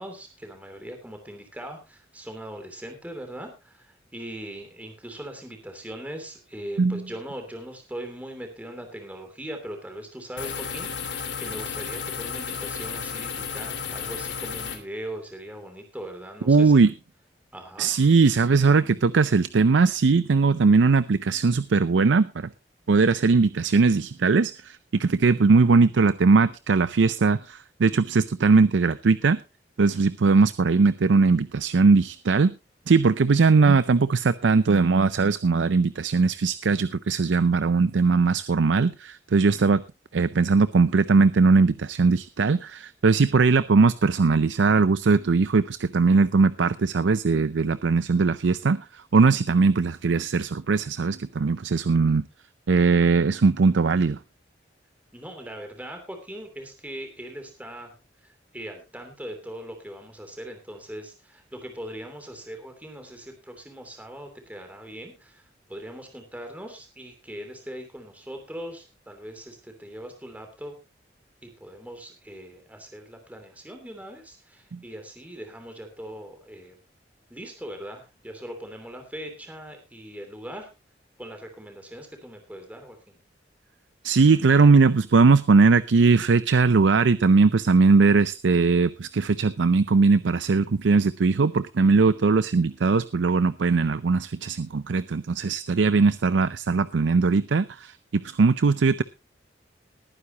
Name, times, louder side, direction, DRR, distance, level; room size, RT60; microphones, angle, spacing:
voice 1, 0.0-16.7 17.5-17.9 55.1-57.9 58.5-65.4 65.7-70.8 71.4-76.7 77.3-80.7 81.2-83.1, right 1 dB, 10° right, 5 dB, 2.9 m, -40 dB
sound 1, 10.4-14.8, left 6 dB, 75° left, 2.9 m, -33 dB
voice 2, 16.5-16.9 17.8-22.5 22.9-29.4 29.8-32.5 32.9-39.8 40.1-52.2 52.7-54.2 74.7-74.8 84.0-99.0, right 4 dB, 90° right, 16 dB, 0.5 m, -20 dB
20.0 x 9.6 x 2.9 m, 0.27 s
head